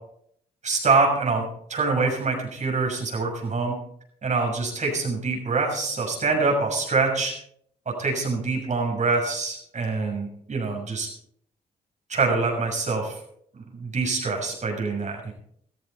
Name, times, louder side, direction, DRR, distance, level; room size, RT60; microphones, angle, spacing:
voice 1, 0.6-3.7 4.2-7.3 7.9-11.1 12.1-13.2 13.7-15.3, right 4 dB, 45° right, 1 dB, 6.5 m, -25 dB
14.5 x 14.5 x 4.3 m, 0.67 s
supercardioid pair, 55°, 17 cm